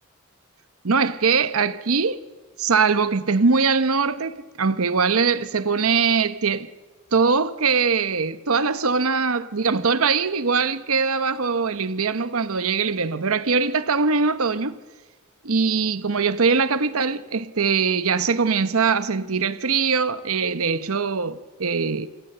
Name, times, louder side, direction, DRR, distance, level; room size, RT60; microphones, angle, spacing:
voice 1, 0.8-2.2 2.6-6.7 7.1-14.8 15.4-22.1, right 5 dB, 75° right, 0.9 m, -22 dB
28.0 x 25.0 x 6.8 m
head